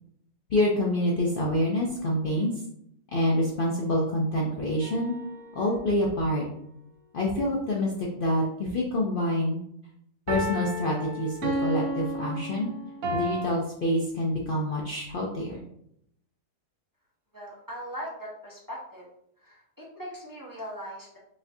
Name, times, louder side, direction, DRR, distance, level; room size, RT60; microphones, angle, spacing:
voice 1, 0.5-2.5 3.1-5.2 5.5-6.5 7.1-9.6 10.3-12.7 13.1-15.6, left 1 dB, 85° left, -3 dB, 0.4 m, -27 dB
sound 1, 4.8-5.8 10.3-13.4, equal, 65° right, 1.1 m, -32 dB
voice 2, 17.3-19.1 19.4-21.2, equal, 20° right, -5 dB, 0.5 m, -40 dB
5.1 x 2.6 x 2.6 m, 0.74 s
omnidirectional pair, 1.7 m